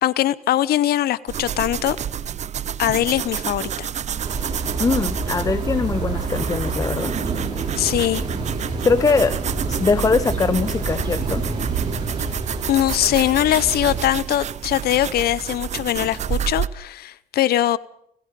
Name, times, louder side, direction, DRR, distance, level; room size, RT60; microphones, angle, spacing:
voice 1, 0.0-2.0 2.8-3.9 7.8-8.2 12.7-17.8, left 13 dB, 65° left, 0.9 m, -21 dB
sound 1, 1.3-16.7, right 9 dB, 45° right, 0.9 m, -29 dB
sound 2, 4.2-14.0, right 3 dB, 25° right, 6.8 m, -28 dB
voice 2, 4.8-7.1 8.8-9.4 9.7-11.4, left 4 dB, 20° left, 0.8 m, -21 dB
29.5 x 16.5 x 5.3 m
cardioid pair, 110°, 17 cm